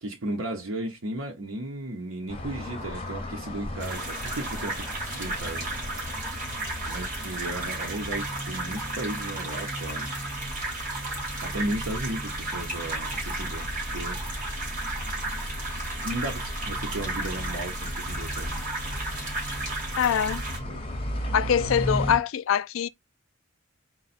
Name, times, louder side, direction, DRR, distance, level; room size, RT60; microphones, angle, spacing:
voice 1, 0.0-6.0 6.8-10.1 11.4-14.2 16.0-18.5 20.6-20.8, right 1 dB, 75° right, 0.9 m, -35 dB
sound 1, 2.3-22.2, equal, 30° left, 0.9 m, -36 dB
sound 2, 3.8-20.6, right 2 dB, 45° right, 2.0 m, -34 dB
voice 2, 20.0-20.4 21.3-22.9, left 8 dB, 70° left, 0.3 m, -24 dB
4.0 x 2.3 x 4.2 m
head